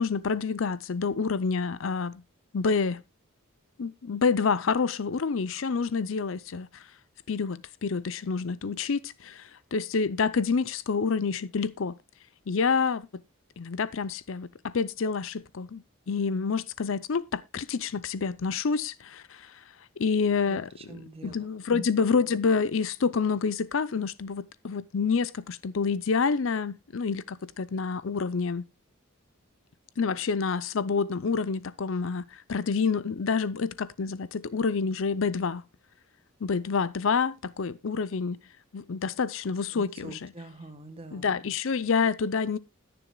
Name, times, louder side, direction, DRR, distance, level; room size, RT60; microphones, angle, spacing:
voice 1, 0.0-2.2 2.5-3.0 3.8-6.8 7.3-12.0 12.5-13.2 13.6-19.5 20.0-20.7 21.2-28.7 30.0-35.6 36.4-38.4 38.7-40.3 41.1-42.6, left 5 dB, 65° left, 0.6 m, -28 dB
voice 2, 20.5-21.8 39.7-41.3, right 2 dB, 30° right, 1.4 m, -44 dB
20.5 x 6.9 x 2.3 m
head